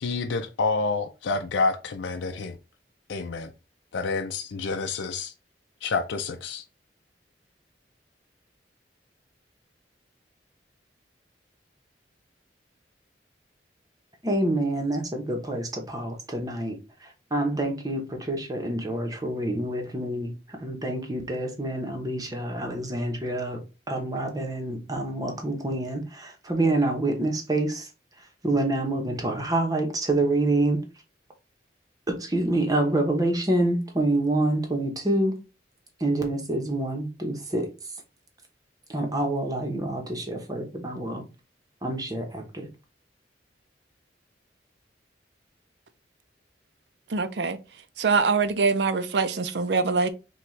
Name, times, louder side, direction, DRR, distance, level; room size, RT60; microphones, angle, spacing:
voice 1, 0.0-2.6 3.1-3.5 3.9-5.3 5.8-6.6, left 4 dB, 85° left, 0.5 m, -28 dB
voice 2, 14.2-23.6 23.9-27.9 28.4-30.8 32.1-35.4 36.0-37.7 38.9-41.2 41.8-42.7, right 2 dB, 20° right, 0.9 m, -27 dB
voice 3, 47.1-47.6 48.0-50.1, right 4 dB, 70° right, 0.5 m, -23 dB
5.9 x 2.3 x 3.2 m
head